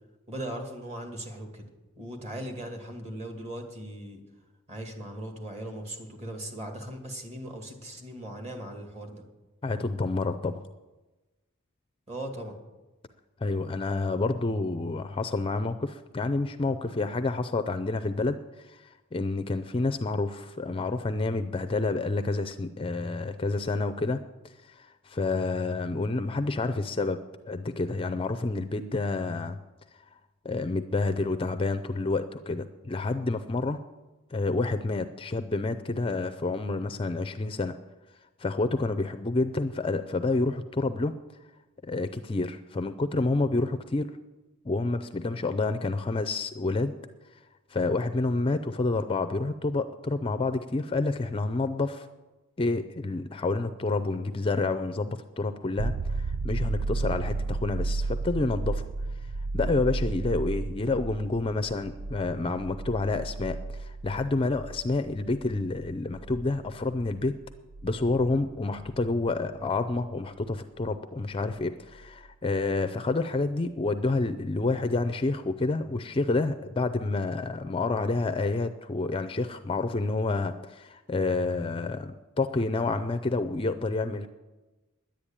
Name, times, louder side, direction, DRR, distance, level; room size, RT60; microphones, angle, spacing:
voice 1, 0.3-1.7 2.0-4.2 4.7-9.2 12.1-12.6, right 1 dB, 30° right, 3 dB, 2.2 m, -38 dB
voice 2, 9.6-10.6 13.4-24.2 24.6-27.2 27.5-29.6 30.4-33.8 34.3-37.8 38.4-41.1 41.8-44.1 44.6-46.9 47.7-52.1 52.6-58.8 59.5-67.3 67.8-84.3, left 3 dB, 25° left, 11 dB, 0.5 m, -29 dB
sound 1, 55.8-69.3 72.0-72.1, right 3 dB, 65° right, 0.5 m, -33 dB
10.5 x 9.9 x 8.8 m, 1.1 s
head